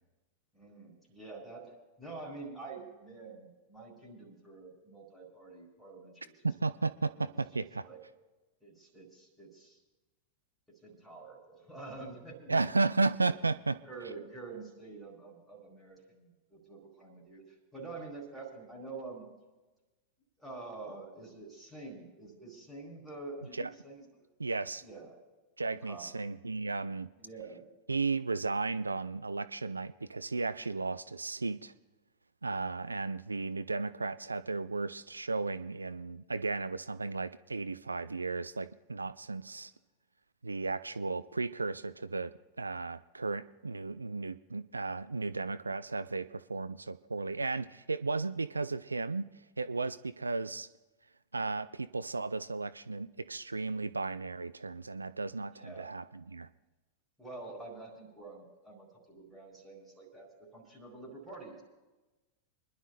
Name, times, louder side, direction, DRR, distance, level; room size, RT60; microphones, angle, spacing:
voice 1, 0.5-1.7 2.0-6.4 7.6-8.0 8.6-9.8 10.8-12.8 13.8-17.4 17.7-19.3 20.4-24.0 24.8-25.2 25.7-26.1 27.2-27.6 55.5-55.9 57.2-61.6, right 3 dB, ahead, -3 dB, 4.4 m, -47 dB
voice 2, 6.4-7.8 12.5-13.8 23.5-23.7 24.4-24.8 25.6-27.1 27.9-31.7 32.4-39.7 40.4-49.3 49.6-50.7 51.3-56.5, right 3 dB, 80° right, 15 dB, 0.3 m, -34 dB
29.5 x 11.0 x 2.5 m, 1.1 s
figure-of-eight pair, 90°, 0 cm